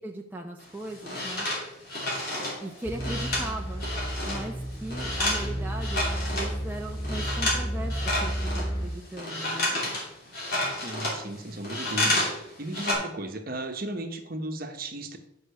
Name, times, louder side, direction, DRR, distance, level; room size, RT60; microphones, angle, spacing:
voice 1, 0.0-1.5 2.6-3.8 4.2-9.7, right 1 dB, 10° right, 0 dB, 0.5 m, -38 dB
sound 1, 0.6-4.5 4.7-6.6 6.9-7.6 7.9-12.4 12.6-12.9, left 1 dB, 50° left, 2.9 m, -30 dB
sound 2, 2.8-8.9, equal, 10° left, 2.5 m, -32 dB
voice 2, 10.8-15.2, right 1 dB, 45° right, 5 dB, 0.9 m, -35 dB
6.6 x 5.4 x 6.7 m, 0.83 s
head